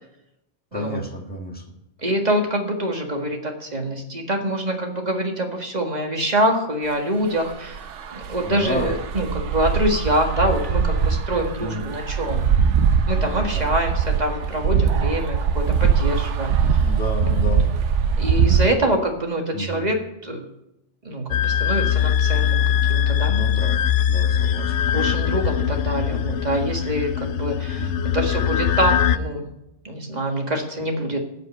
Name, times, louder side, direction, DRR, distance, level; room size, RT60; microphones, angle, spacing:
voice 1, 0.7-1.6 8.4-9.0 11.6-11.9 13.3-13.7 16.8-17.7 19.5-19.8 23.3-23.8 24.1-25.1 26.1-26.2 27.8-28.1, left 1 dB, 10° left, 0 dB, 1.7 m, -31 dB
voice 2, 2.0-7.8 8.1-12.5 13.1-16.5 18.2-20.0 20.2-20.5 21.1-23.3 24.9-29.5 29.9-31.2, right 1 dB, 35° right, 3 dB, 1.8 m, -25 dB
sound 1, 7.3-18.7, right 6 dB, 80° right, 1.1 m, -22 dB
sound 2, 21.3-29.2, left 9 dB, 75° left, 0.9 m, -21 dB
14.5 x 5.2 x 8.3 m, 0.84 s
omnidirectional pair, 1.2 m